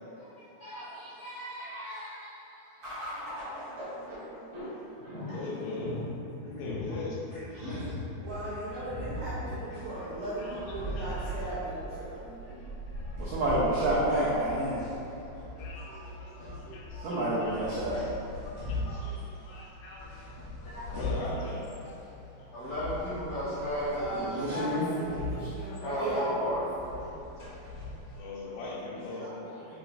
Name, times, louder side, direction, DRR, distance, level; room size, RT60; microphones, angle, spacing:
voice 1, 0.2-3.0 5.0-5.4 7.3-7.9 9.2-9.3 15.7-16.6 16.9-17.1 20.6-20.9 22.5-24.6 25.8-26.6 28.8-28.9, equal, 65° left, -14 dB, 1.4 m, -37 dB
sound 1, 2.8-15.4, equal, 45° right, 1.4 m, -39 dB
voice 2, 5.3-6.0 6.4-7.2 9.7-10.1 10.4-11.5 12.4-12.7 12.9-13.4 15.4-15.9 16.2-18.1 18.6-22.0 22.6-22.7 23.0-23.3 23.7-23.8 24.8-25.8 28.1-29.6, left 2 dB, 85° left, -5 dB, 2.4 m, -42 dB
sound 2, 8.2-28.2, left 2 dB, 50° left, 0.9 m, -42 dB
voice 3, 8.2-12.2 23.9-26.6, right 1 dB, 70° right, -12 dB, 1.7 m, -37 dB
voice 4, 13.2-14.8 15.9-16.0 16.7-18.0 24.1-24.9 29.2-29.3 29.6-29.8, right 1 dB, 90° right, -8 dB, 1.6 m, -30 dB
6.5 x 2.4 x 2.5 m, 2.9 s
omnidirectional pair, 4.0 m